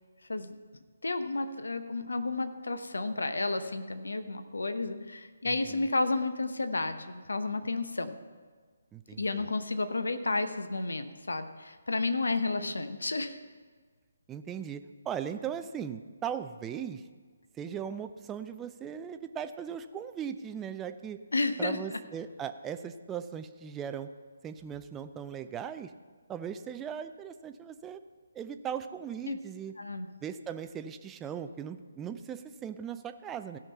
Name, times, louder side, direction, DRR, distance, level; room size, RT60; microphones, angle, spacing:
voice 1, 1.0-8.1 9.2-13.4 21.3-22.0 29.3-29.4 29.8-30.1, left 3 dB, 70° left, 9 dB, 0.9 m, -32 dB
voice 2, 5.4-5.9 8.9-9.4 14.3-17.0 17.6-21.2 21.6-24.1 24.4-25.9 26.3-28.0 28.3-29.7 30.2-33.6, right 8 dB, 10° right, 9 dB, 0.4 m, -38 dB
15.5 x 5.8 x 5.5 m, 1.5 s
figure-of-eight pair, 145°, 0 cm